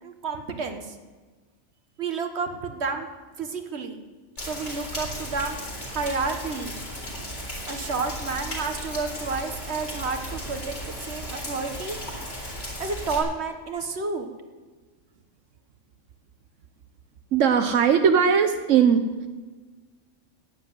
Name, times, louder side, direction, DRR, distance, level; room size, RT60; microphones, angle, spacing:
voice 1, 0.0-1.0 2.0-3.1 3.4-4.0 4.4-5.6 5.9-6.8 7.7-12.0 12.8-14.3, right 4 dB, 60° right, 6 dB, 1.7 m, -30 dB
Rain, 4.4-13.2, equal, 70° left, 4.1 m, -35 dB
voice 2, 17.3-19.0, right 7 dB, 90° right, 7 dB, 1.2 m, -19 dB
16.0 x 7.7 x 9.4 m, 1.3 s
omnidirectional pair, 1.2 m